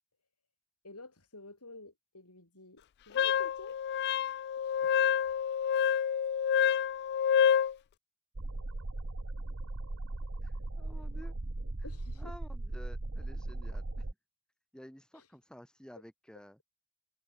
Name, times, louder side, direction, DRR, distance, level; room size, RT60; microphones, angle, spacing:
voice 1, 0.8-3.8 4.6-4.8 11.8-12.3 15.1-15.3, left 2 dB, 90° left, 7.2 m, -50 dB
Wind instrument woodwind instrument, 3.1-7.7, left 8 dB, 50° left, 0.3 m, -28 dB
sound 1, 8.4-14.1, right 2 dB, 60° right, 1.3 m, -38 dB
voice 2, 10.4-11.3 12.1-14.1 14.7-16.6, equal, 5° left, 6.5 m, -52 dB
head